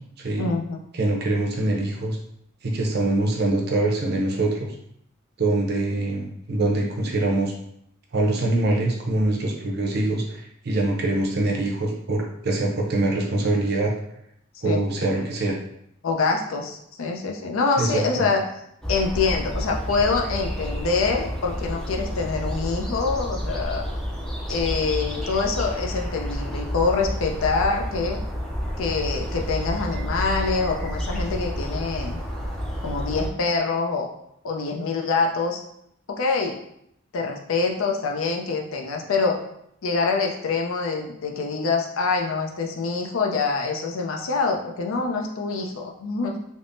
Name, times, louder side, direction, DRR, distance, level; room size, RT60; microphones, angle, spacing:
voice 1, 0.4-0.8 14.6-14.8 16.0-18.4 18.9-23.8 24.5-28.2 28.8-32.2 32.8-34.1 34.4-35.6 36.1-36.6 37.1-39.4 39.8-46.4, left 4 dB, 75° left, 2 dB, 0.5 m, -25 dB
voice 2, 1.0-2.2 2.6-4.7 5.4-7.5 8.1-13.9 14.6-15.5 17.8-18.3, right 2 dB, 50° right, 0 dB, 0.5 m, -24 dB
sound 1, 18.8-33.3, equal, 5° left, 0.3 m, -30 dB
3.4 x 2.0 x 2.5 m, 0.74 s
head